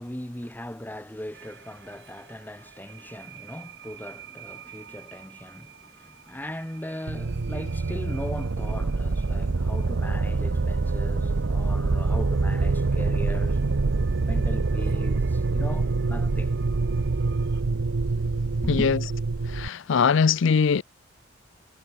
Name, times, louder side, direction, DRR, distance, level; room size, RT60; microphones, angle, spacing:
voice 1, 0.0-13.6 14.2-16.5 18.6-18.9, left 1 dB, 10° left, 1.3 m, -38 dB
sound 1, 1.3-17.6, right 8 dB, 55° right, 2.4 m, -50 dB
sound 2, 7.1-19.7, right 3 dB, 70° right, 0.7 m, -25 dB
voice 2, 18.7-19.0 19.5-20.8, left 6 dB, 60° left, 0.5 m, -21 dB
head